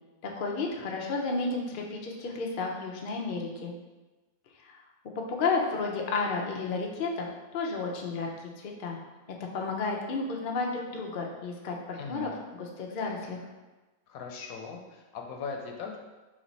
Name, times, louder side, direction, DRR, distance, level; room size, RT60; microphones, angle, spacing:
voice 1, 0.2-3.7 5.2-7.3 7.5-9.0 9.5-13.5, left 4 dB, 60° left, 0 dB, 0.5 m, -32 dB
voice 2, 12.0-12.3 14.1-16.0, left 5 dB, 80° left, 1 dB, 1.0 m, -39 dB
3.2 x 3.1 x 3.9 m, 1.2 s
omnidirectional pair, 1.5 m